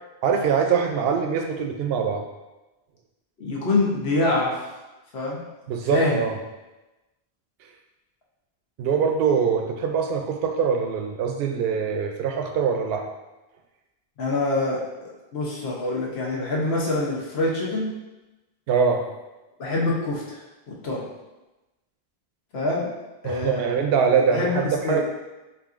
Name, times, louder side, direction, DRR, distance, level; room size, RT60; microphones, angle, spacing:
voice 1, 0.2-2.2 5.7-6.4 8.8-13.0 18.7-19.0 23.2-25.0, right 6 dB, 75° right, 3 dB, 0.8 m, -23 dB
voice 2, 3.4-4.6 5.1-5.4 5.9-6.2 14.2-17.9 19.6-20.4 20.7-21.1 22.5-22.9 23.2-23.6 24.1-25.0, left 2 dB, 80° left, -4 dB, 1.2 m, -25 dB
6.8 x 2.6 x 2.5 m, 1.1 s
omnidirectional pair, 1.1 m